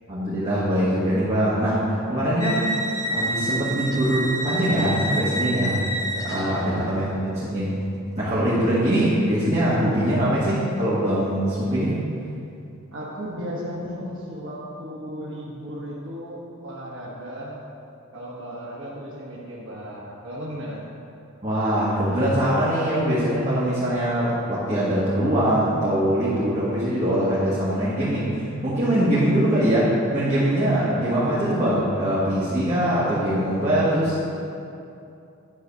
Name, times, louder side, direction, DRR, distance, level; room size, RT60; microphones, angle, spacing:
voice 1, 0.1-1.8 2.1-2.6 3.1-5.9 6.1-7.7 8.2-12.0 21.4-28.3 28.6-34.4, right 1 dB, 35° right, -10 dB, 1.8 m, -22 dB
sound 1, 2.4-6.9, right 1 dB, 15° left, 0.6 m, -28 dB
voice 2, 6.3-7.0 12.9-17.6 18.1-20.8, equal, 60° right, -6 dB, 1.3 m, -35 dB
9.9 x 4.1 x 6.8 m, 2.6 s
head